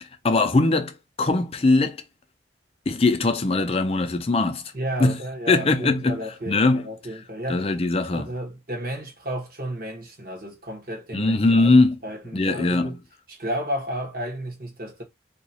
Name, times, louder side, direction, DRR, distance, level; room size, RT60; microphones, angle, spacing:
voice 1, 0.2-2.0 2.9-4.6 5.0-5.2 5.5-6.2 6.5-6.8 7.5-8.3 11.1-12.0 12.3-13.0, left 3 dB, 30° left, 0.5 m, -21 dB
voice 2, 4.7-7.7 8.1-11.7 12.0-13.0 13.3-15.0, equal, 50° right, 1.2 m, -32 dB
2.8 x 2.3 x 4.1 m
head